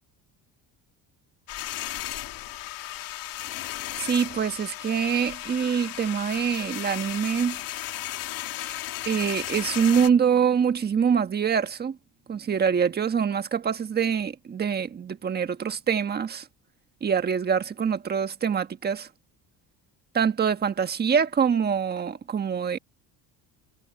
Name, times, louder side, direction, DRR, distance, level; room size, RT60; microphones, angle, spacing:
sound 1, 1.5-10.1, left 14 dB, 65° left, 2.9 m, -35 dB
voice 1, 4.0-7.6 9.1-12.0 12.3-16.5 17.0-19.1 20.1-22.8, right 7 dB, 25° right, 1.4 m, -25 dB
cardioid pair, 145°, 37 cm